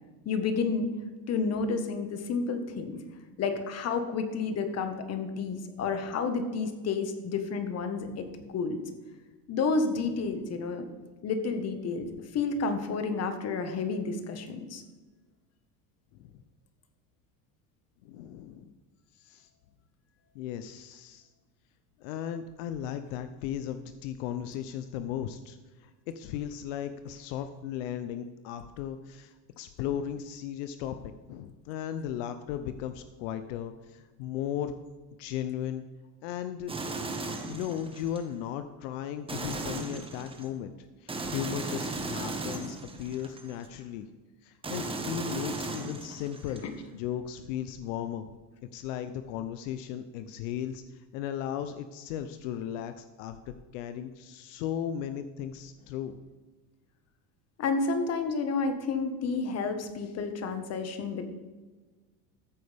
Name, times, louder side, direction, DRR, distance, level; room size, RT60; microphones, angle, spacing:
voice 1, 0.2-0.9 1.3-3.0 3.4-8.3 8.5-8.8 9.5-10.9 11.2-14.8 46.6-46.7 57.6-61.3, left 4 dB, 40° left, 7 dB, 1.5 m, -30 dB
voice 2, 18.0-18.7 19.1-19.5 20.3-21.3 22.0-31.0 31.3-34.7 35.2-35.8 36.2-36.7 37.5-44.1 44.4-46.6 46.9-48.3 48.7-53.4 53.7-56.2, left 10 dB, 80° left, 10 dB, 0.7 m, -36 dB
sound 1, 36.7-38.2 39.3-40.5 41.1-43.7 44.6-46.6, right 3 dB, 15° right, 1.2 m, -36 dB
14.0 x 7.9 x 3.5 m, 1.3 s
supercardioid pair, 115°, 37 cm